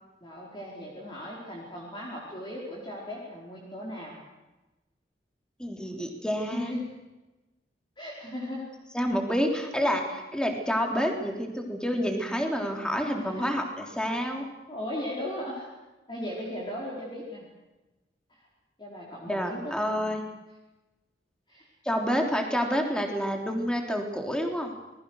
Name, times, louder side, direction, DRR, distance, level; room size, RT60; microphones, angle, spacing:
voice 1, 0.2-4.1 6.4-6.8 8.0-8.6 13.2-13.4 14.7-15.7 16.1-17.5 18.3-18.4 18.8-19.8 21.5-21.7, left 1 dB, 25° left, -4 dB, 4.7 m, -37 dB
voice 2, 5.6-6.7 8.9-14.5 19.3-20.2 21.9-24.7, equal, 5° left, 2 dB, 3.5 m, -28 dB
28.5 x 20.0 x 6.5 m, 1.1 s
head